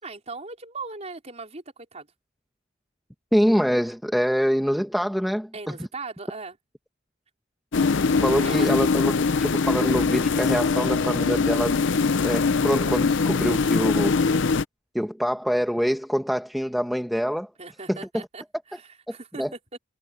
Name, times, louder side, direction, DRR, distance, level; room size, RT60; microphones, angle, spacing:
voice 1, 0.0-2.1 5.5-6.6 8.4-8.7 17.6-19.8, right 3 dB, 35° right, 4.6 m, -39 dB
voice 2, 3.3-5.8 8.2-11.8 12.2-14.1 14.9-17.5 17.9-18.0 19.1-19.5, equal, ahead, 1.2 m, -25 dB
sound 1, 7.7-14.6, left 4 dB, 60° left, 0.7 m, -22 dB
head